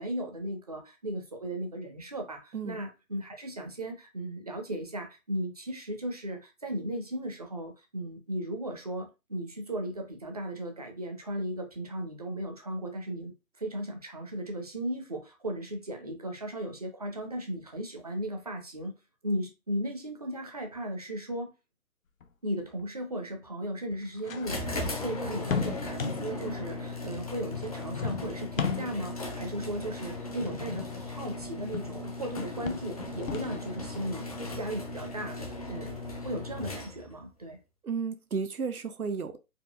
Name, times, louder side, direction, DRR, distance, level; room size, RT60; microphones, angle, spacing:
voice 1, 0.0-19.0 19.2-21.5 22.4-37.6, right 1 dB, 30° right, 0.5 m, -36 dB
voice 2, 2.5-2.9 37.8-39.4, right 5 dB, 85° right, 0.7 m, -33 dB
sound 1, 22.2-22.3 22.8-22.9 23.9-26.5 27.4-29.2 30.3-32.0 32.2-33.7, left 6 dB, 65° left, 0.6 m, -36 dB
sound 2, 24.4-37.2, left 2 dB, 25° left, 0.5 m, -38 dB
4.3 x 2.5 x 2.3 m
figure-of-eight pair, 140°, 43 cm